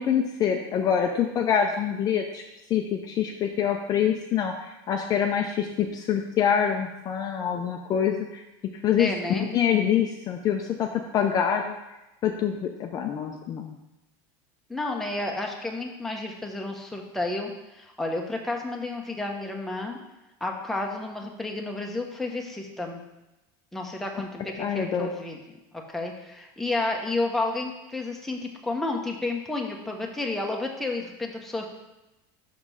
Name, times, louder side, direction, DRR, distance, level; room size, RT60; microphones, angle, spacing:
voice 1, 0.0-2.4 2.7-8.4 8.8-11.7 12.2-13.8 24.6-25.1, left 8 dB, 35° left, 3 dB, 0.6 m, -25 dB
voice 2, 9.0-9.5 14.7-20.0 20.4-23.0 23.7-25.4 25.9-31.7, left 2 dB, ahead, 0 dB, 0.9 m, -31 dB
6.0 x 5.1 x 5.4 m, 0.97 s
supercardioid pair, 145°, 12 cm